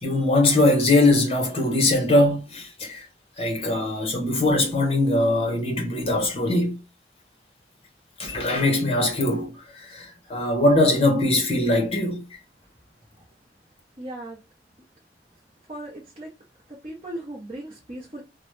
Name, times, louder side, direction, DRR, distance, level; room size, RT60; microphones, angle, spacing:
voice 1, 0.0-3.1 3.4-6.8 8.2-12.4, left 2 dB, 35° left, 0.9 m, -21 dB
voice 2, 14.0-14.4 15.7-16.3 16.7-18.2, right 1 dB, 30° right, 0.7 m, -37 dB
3.0 x 2.1 x 3.1 m
head